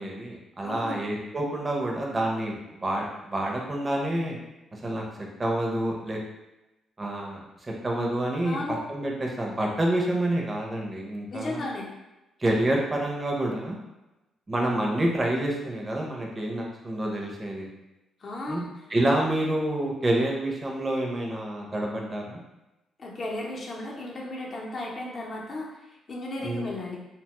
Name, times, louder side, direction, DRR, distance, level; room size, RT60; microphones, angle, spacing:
voice 1, 0.0-4.4 4.7-6.2 7.0-11.6 12.4-13.8 14.5-17.7 18.5-18.6 18.9-22.4 26.4-26.7, right 1 dB, 25° right, -1 dB, 0.6 m, -28 dB
voice 2, 0.6-1.0 8.4-8.8 11.3-11.9 18.2-18.9 23.0-27.0, left 2 dB, 40° left, -2 dB, 0.7 m, -35 dB
2.8 x 2.2 x 2.9 m, 0.99 s
cardioid pair, 100°, 0 cm